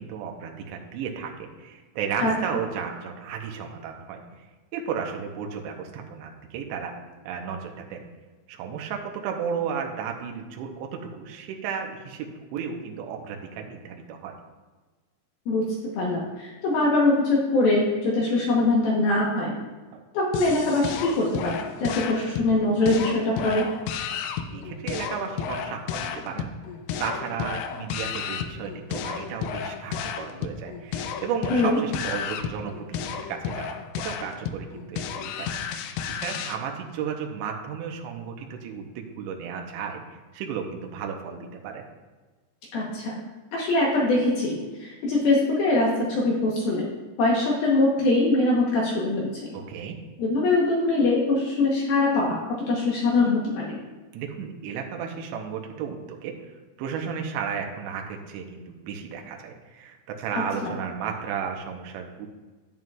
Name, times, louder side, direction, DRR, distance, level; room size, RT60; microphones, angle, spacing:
voice 1, 0.0-4.4 4.7-6.9 7.3-8.1 8.5-14.4 19.9-20.0 24.1-26.5 27.0-41.8 49.5-50.0 54.1-56.3 56.8-62.3, right 7 dB, 85° right, 2 dB, 3.0 m, -34 dB
voice 2, 16.0-19.5 20.1-23.7 31.5-31.8 42.7-43.2 43.5-46.9 47.2-49.6 50.2-52.4 52.7-53.8 60.3-60.8, left 2 dB, 70° left, -3 dB, 2.5 m, -23 dB
sound 1, 20.3-36.6, left 7 dB, 90° left, 2.2 m, -33 dB
10.5 x 9.2 x 2.4 m, 1.3 s
omnidirectional pair, 5.3 m